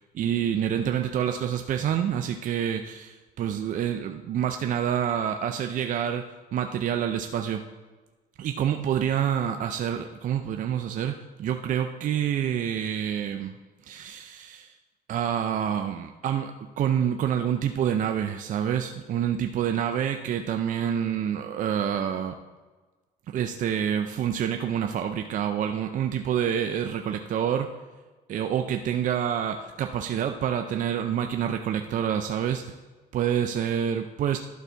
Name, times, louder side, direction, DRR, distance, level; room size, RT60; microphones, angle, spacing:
voice 1, 0.1-7.6 8.4-13.5 13.9-14.7 15.1-22.4 23.3-27.7 28.3-32.7 33.1-34.4, right 9 dB, 50° right, 6 dB, 0.5 m, -27 dB
11.5 x 4.1 x 4.6 m, 1.3 s
cardioid pair, 110°, 17 cm